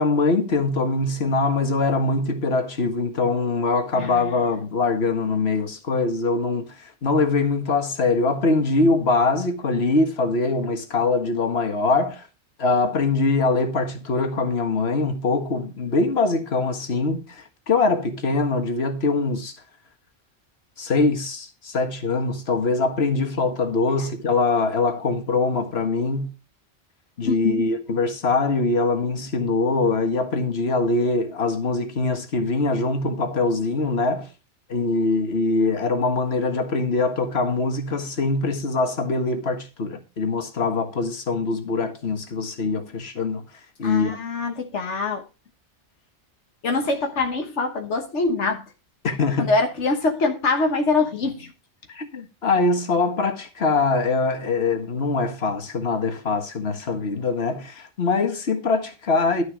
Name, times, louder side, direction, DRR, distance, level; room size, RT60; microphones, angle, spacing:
voice 1, 0.0-12.3 12.6-19.5 20.8-26.3 27.2-34.3 34.7-43.4 43.8-44.2 49.0-49.5 51.9-59.4, left 3 dB, 60° left, 1.9 m, -23 dB
voice 2, 4.0-4.3 27.2-27.6 43.8-45.2 46.6-48.6 49.4-51.5, left 3 dB, 90° left, 1.6 m, -24 dB
12.0 x 6.6 x 5.0 m
omnidirectional pair, 1.2 m